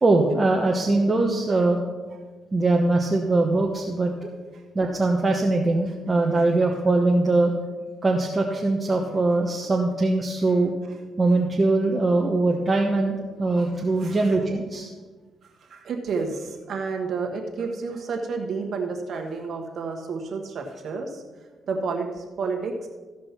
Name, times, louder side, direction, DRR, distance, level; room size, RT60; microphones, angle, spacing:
voice 1, 0.0-1.8 2.5-4.3 4.7-7.5 8.0-10.7 11.2-14.9, right 2 dB, 25° right, 0 dB, 1.1 m, -22 dB
voice 2, 15.7-21.2 21.7-22.9, right 4 dB, 60° right, 2 dB, 1.5 m, -30 dB
14.5 x 5.1 x 6.0 m, 1.3 s
cardioid pair, 90°, 0 cm